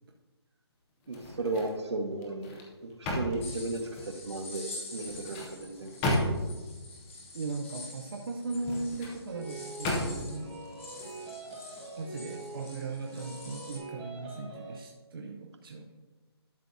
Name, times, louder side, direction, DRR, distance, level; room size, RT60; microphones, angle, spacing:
sound 1, 1.0-1.8 2.2-4.2 4.9-6.7 8.4-9.2 9.8-10.4 10.9-11.1, left 1 dB, 10° left, 0.5 m, -34 dB
voice 1, 1.1-2.5 2.8-4.6 4.9-5.9, right 2 dB, 80° right, 4 dB, 1.4 m, -34 dB
sound 2, 3.4-13.8, left 2 dB, 30° left, 1.6 m, -47 dB
voice 2, 7.3-10.6 12.0-15.9, right 3 dB, 55° right, 1 dB, 0.7 m, -38 dB
sound 3, 9.3-14.8, right 2 dB, 15° right, 1.4 m, -44 dB
11.5 x 6.1 x 2.7 m, 1.2 s
hypercardioid pair, 170°, 14 cm